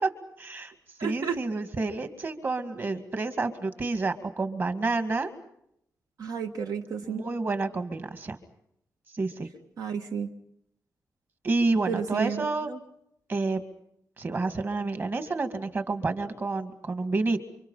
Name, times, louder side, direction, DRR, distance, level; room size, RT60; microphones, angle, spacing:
voice 1, 0.4-0.7 1.0-5.3 7.1-8.4 9.1-9.5 11.4-12.7 13.3-13.6 14.2-17.4, right 3 dB, 35° right, 9 dB, 2.1 m, -29 dB
voice 2, 1.0-1.4 6.2-7.2 9.8-10.3 11.9-12.8, right 6 dB, 75° right, 5 dB, 1.6 m, -32 dB
29.5 x 25.5 x 5.7 m, 0.75 s
wide cardioid pair, 180°, 6 cm